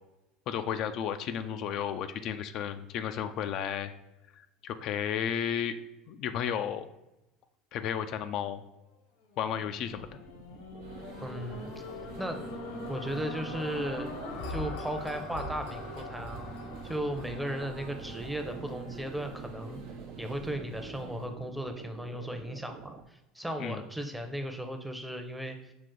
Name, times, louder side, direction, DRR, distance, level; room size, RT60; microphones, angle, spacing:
voice 1, 0.5-3.9 4.4-5.7 6.1-6.9 7.7-8.6 9.4-10.1 23.6-23.8, left 9 dB, 55° left, 8 dB, 0.3 m, -33 dB
sound 1, 9.3-19.6 20.2-20.3, left 2 dB, 80° left, 1.0 m, -42 dB
sound 2, 9.9-23.0, right 7 dB, 50° right, 0.4 m, -49 dB
sound 3, 10.8-21.3, right 3 dB, 75° right, 0.9 m, -47 dB
voice 2, 11.2-11.7 12.2-12.4 12.9-14.2 14.5-16.5 16.8-19.8 20.2-25.7, equal, 5° right, 5 dB, 0.7 m, -36 dB
5.9 x 2.4 x 3.7 m, 0.91 s
hypercardioid pair, 80°, 0 cm